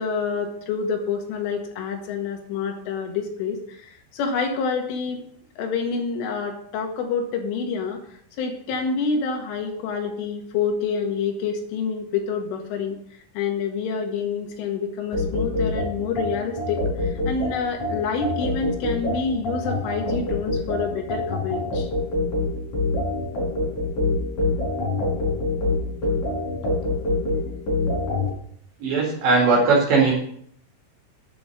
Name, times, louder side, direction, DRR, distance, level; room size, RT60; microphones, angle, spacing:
voice 1, 0.0-5.2 5.6-8.0 8.4-13.0 13.4-21.9, left 5 dB, 80° left, 2 dB, 4.2 m, -27 dB
sound 1, 15.1-28.3, left 2 dB, 40° left, 5.7 m, -25 dB
voice 2, 28.8-30.1, right 4 dB, 65° right, -3 dB, 4.3 m, -18 dB
9.7 x 7.0 x 7.8 m, 0.66 s
omnidirectional pair, 5.8 m